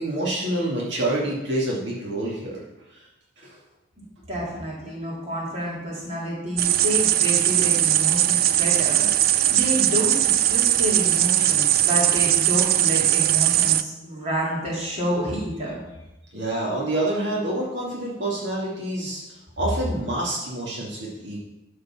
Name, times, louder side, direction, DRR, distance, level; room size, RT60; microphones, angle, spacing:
voice 1, 0.0-2.6 2.9-3.0 3.4-3.6 16.3-19.2 19.6-21.4, right 1 dB, 70° right, -5 dB, 2.5 m, -27 dB
voice 2, 4.3-15.8, equal, 35° right, -6 dB, 3.6 m, -29 dB
sound 1, 6.6-13.8, right 12 dB, 55° right, 0.4 m, -20 dB
12.0 x 5.0 x 5.8 m, 0.98 s
head